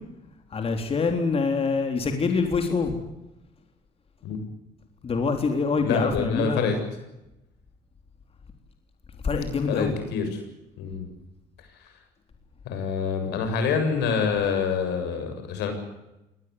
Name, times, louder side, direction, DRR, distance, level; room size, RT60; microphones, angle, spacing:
voice 1, 0.5-3.0 5.0-6.7 9.2-10.0, left 4 dB, 35° left, 5 dB, 3.8 m, -25 dB
voice 2, 5.8-6.8 9.7-10.4 10.8-11.1 12.6-15.7, left 6 dB, 85° left, 6 dB, 7.4 m, -26 dB
23.5 x 19.0 x 9.6 m, 0.94 s
cardioid pair, 110°, 17 cm